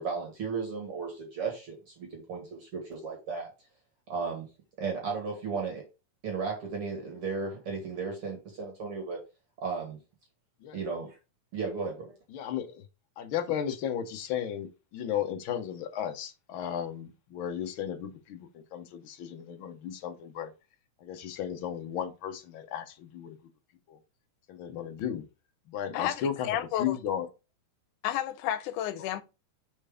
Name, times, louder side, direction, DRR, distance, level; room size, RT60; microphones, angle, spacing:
voice 1, 0.0-3.5 4.1-4.5 4.8-5.8 6.2-9.2 9.6-10.0 10.7-11.2 11.5-12.1, right 5 dB, 50° right, 2.4 m, -35 dB
voice 2, 12.3-12.8 13.2-20.5 21.0-23.4 23.9-24.0 24.5-25.2 25.7-27.3, left 9 dB, 70° left, 1.2 m, -35 dB
voice 3, 25.9-27.0 28.0-29.2, left 12 dB, 90° left, 2.2 m, -31 dB
5.6 x 4.6 x 4.9 m
omnidirectional pair, 3.5 m